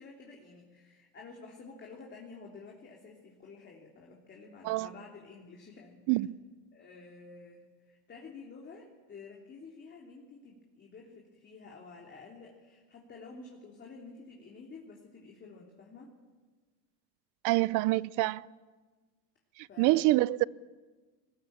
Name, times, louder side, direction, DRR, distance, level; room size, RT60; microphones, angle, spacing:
voice 1, 0.0-6.0 6.7-16.1 19.7-20.0, left 4 dB, 30° left, 3.4 m, -50 dB
voice 2, 17.4-18.5 19.6-20.4, right 19 dB, 55° right, 0.6 m, -26 dB
21.0 x 19.5 x 8.9 m
supercardioid pair, 135°, 39 cm